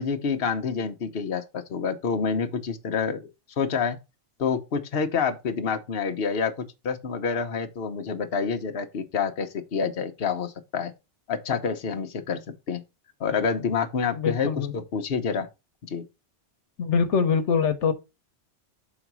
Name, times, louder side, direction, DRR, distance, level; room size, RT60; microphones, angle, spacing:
voice 1, 0.0-3.3 3.6-4.0 4.4-6.5 6.8-10.9 11.3-12.4 12.7-12.8 13.2-15.5 15.8-16.0, left 5 dB, 60° left, 1.1 m, -27 dB
voice 2, 14.1-14.7 16.8-17.9, left 6 dB, 85° left, 1.3 m, -23 dB
6.3 x 4.0 x 6.0 m
omnidirectional pair, 1.2 m